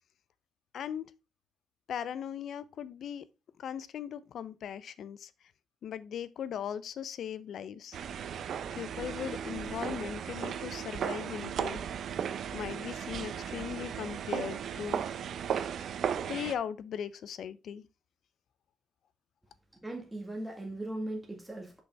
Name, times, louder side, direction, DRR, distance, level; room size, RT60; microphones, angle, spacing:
voice 1, 0.7-1.1 1.9-3.3 3.6-5.3 5.8-8.0 8.7-11.8 12.5-15.0 16.3-17.9, left 8 dB, 65° left, 0.5 m, -38 dB
sound 1, 7.9-16.5, right 8 dB, 65° right, 0.6 m, -36 dB
voice 2, 19.8-21.8, right 1 dB, 10° right, 1.7 m, -38 dB
6.1 x 5.3 x 3.4 m
cardioid pair, 90°, 0 cm